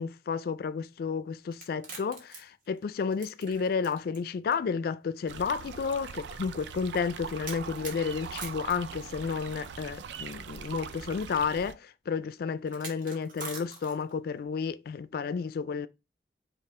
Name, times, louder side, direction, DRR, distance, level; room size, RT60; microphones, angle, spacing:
voice 1, 0.0-15.9, left 5 dB, 55° left, 0.3 m, -32 dB
sound 1, 1.5-4.2 4.5-4.6 5.5-5.6 7.4-9.6 10.7-10.8 12.7-14.2, right 4 dB, 50° right, 1.3 m, -43 dB
sound 2, 5.3-11.7, right 6 dB, 80° right, 0.4 m, -42 dB
5.4 x 2.4 x 3.6 m
head